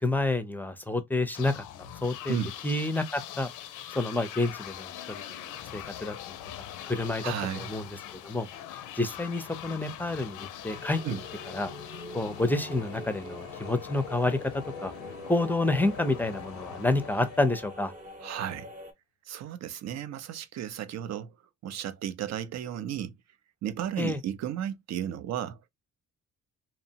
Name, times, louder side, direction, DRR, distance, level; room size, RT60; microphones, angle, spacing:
voice 1, 0.0-1.5 2.0-2.4 2.6-3.5 3.9-6.1 6.6-8.5 9.0-11.0 11.5-11.7 12.1-14.9 15.3-17.9 24.0-24.2, left 2 dB, 5° left, 0.5 m, -29 dB
sound 1, 1.3-18.1, left 11 dB, 90° left, 0.5 m, -42 dB
voice 2, 7.2-7.7 11.0-11.2 18.2-18.7 19.3-21.3 21.6-23.1 23.6-25.6, right 10 dB, 60° right, 0.5 m, -34 dB
sound 2, 10.7-18.9, equal, 25° right, 0.7 m, -45 dB
2.8 x 2.1 x 2.7 m
cardioid pair, 90°, 30 cm